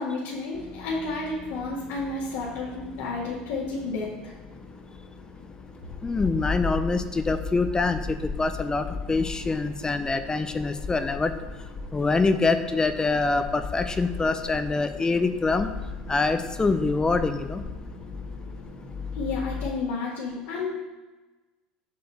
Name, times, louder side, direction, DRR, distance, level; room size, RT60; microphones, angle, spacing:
voice 1, 0.0-4.3 19.1-20.7, left 3 dB, 70° left, -6 dB, 2.0 m, -31 dB
sound 1, 0.5-19.7, left 4 dB, 35° left, 1.8 m, -37 dB
voice 2, 6.0-11.3 11.9-15.7 16.1-17.6, left 3 dB, 20° left, 10 dB, 0.7 m, -25 dB
8.0 x 6.6 x 4.3 m, 1.2 s
hypercardioid pair, 80°, 4 cm